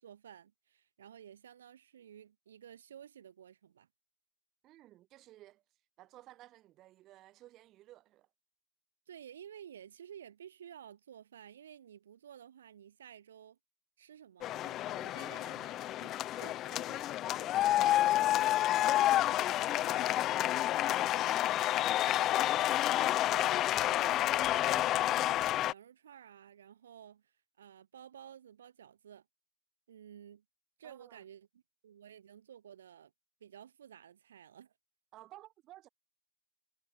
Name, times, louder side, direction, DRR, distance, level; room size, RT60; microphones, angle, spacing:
voice 1, 0.0-3.9 9.1-13.6 14.0-17.2 17.7-18.0 23.0-29.2 29.9-30.4 30.8-33.1 33.4-34.7, right 9 dB, 65° right, 3.5 m, -53 dB
voice 2, 4.6-8.3 16.7-17.0 17.4-17.8 18.1-19.2 19.5-21.8 30.8-31.2 35.1-35.9, right 15 dB, 35° right, 4.1 m, -57 dB
sound 1, 14.4-25.7, left 14 dB, 35° left, 0.3 m, -29 dB
figure-of-eight pair, 90°, 0 cm